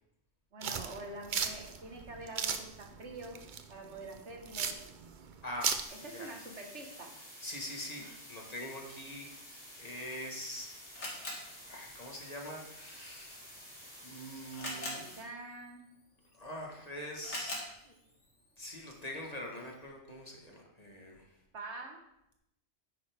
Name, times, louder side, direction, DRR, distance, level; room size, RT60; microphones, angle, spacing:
voice 1, 0.5-3.4 3.7-4.7 6.0-7.2 8.0-8.1 14.7-15.9 21.5-22.0, right 2 dB, 70° right, 2 dB, 1.8 m, -46 dB
sound 1, 0.6-5.8, right 6 dB, 50° right, 0.7 m, -36 dB
voice 2, 5.4-6.3 7.4-9.3 9.8-10.7 11.7-13.5 14.0-15.0 16.3-18.0 18.6-21.4, left 1 dB, 35° left, 0 dB, 1.6 m, -44 dB
sound 2, 5.8-15.2, equal, 5° left, 3.8 m, -51 dB
Camera, 10.0-19.9, left 1 dB, 75° left, 2.6 m, -47 dB
9.8 x 9.1 x 3.5 m, 0.81 s
omnidirectional pair, 1.2 m